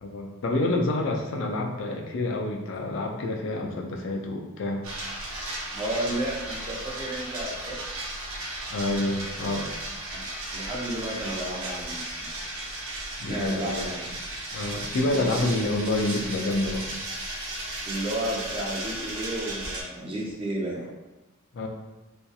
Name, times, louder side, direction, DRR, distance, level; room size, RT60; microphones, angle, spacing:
voice 1, 0.0-4.8 8.7-9.7 13.2-13.9 14.5-16.9 21.5-21.7, left 2 dB, 60° left, 1 dB, 0.4 m, -28 dB
sound 1, 4.8-19.8, right 1 dB, 80° right, 0.7 m, -35 dB
voice 2, 5.7-8.1 10.1-10.2 10.5-12.4 13.3-14.1 15.1-15.4 17.9-20.8, right 1 dB, 25° right, -4 dB, 0.5 m, -32 dB
2.7 x 2.4 x 2.2 m, 1.1 s
head